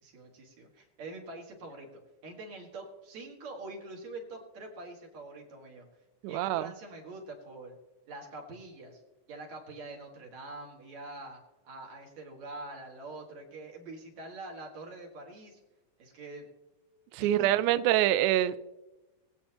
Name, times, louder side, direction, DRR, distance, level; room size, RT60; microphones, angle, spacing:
voice 1, 0.0-1.9 2.2-5.9 6.3-7.8 8.1-9.0 9.3-11.4 11.6-15.6 16.0-16.5 17.2-17.5, right 2 dB, 60° right, 3.2 m, -45 dB
voice 2, 6.2-6.7 17.1-18.6, right 13 dB, 80° right, 1.9 m, -25 dB
21.0 x 8.5 x 2.9 m
omnidirectional pair, 3.7 m